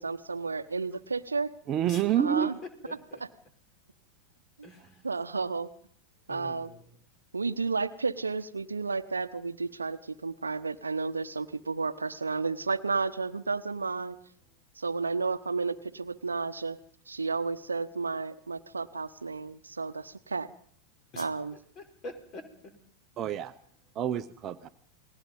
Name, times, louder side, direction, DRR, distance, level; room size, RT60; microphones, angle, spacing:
voice 1, 0.0-1.5 2.2-2.5 3.2-3.3 4.6-4.7 5.0-5.7 6.3-6.7 7.3-14.2 14.8-16.8 17.1-20.5 21.2-21.5, right 4 dB, 75° right, 12 dB, 1.0 m, -32 dB
voice 2, 1.7-2.5 23.2-23.5 23.9-24.7, right 10 dB, 30° right, 11 dB, 1.0 m, -28 dB
voice 3, 2.8-3.2 4.6-5.0 6.3-6.8 21.1-22.4 23.2-23.3, left 1 dB, 30° left, 7 dB, 5.3 m, -45 dB
29.0 x 20.5 x 5.5 m, 0.63 s
figure-of-eight pair, 90°, 0 cm